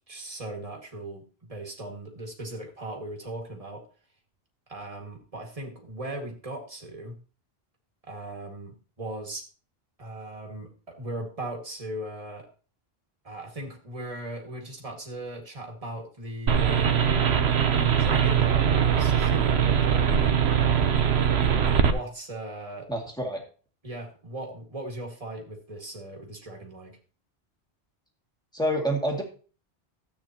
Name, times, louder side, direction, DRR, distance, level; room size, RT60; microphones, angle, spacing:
voice 1, 0.1-3.8 4.7-7.2 8.0-9.4 10.0-12.5 13.2-17.1 17.7-21.1 21.8-22.9 23.8-27.0, right 1 dB, 35° right, 1 dB, 2.1 m, -38 dB
sound 1, 16.5-21.9, right 8 dB, 85° right, 1.1 m, -22 dB
voice 2, 22.9-23.4 28.5-29.2, equal, 5° left, 0 dB, 2.3 m, -27 dB
13.5 x 8.6 x 2.9 m, 0.37 s
omnidirectional pair, 1.1 m